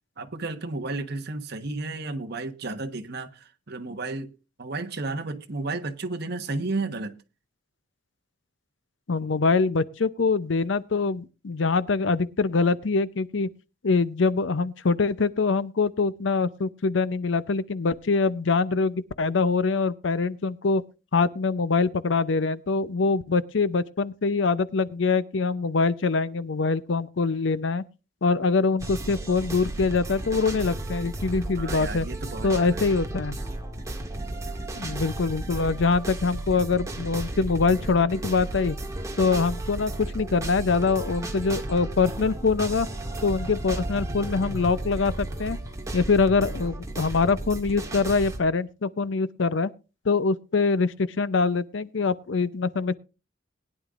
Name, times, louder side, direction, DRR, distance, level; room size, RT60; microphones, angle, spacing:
voice 1, 0.2-4.3 4.6-7.2 31.6-32.8, right 3 dB, 60° right, 1.2 m, -32 dB
voice 2, 9.1-13.5 13.8-20.8 21.1-27.8 28.2-32.1 32.4-33.4 34.7-38.8 39.2-42.9 43.2-45.6 45.9-49.7 50.0-53.0, left 4 dB, 70° left, 0.6 m, -24 dB
sound 1, 28.8-48.4, right 1 dB, 15° right, 1.7 m, -34 dB
20.5 x 10.0 x 2.5 m
head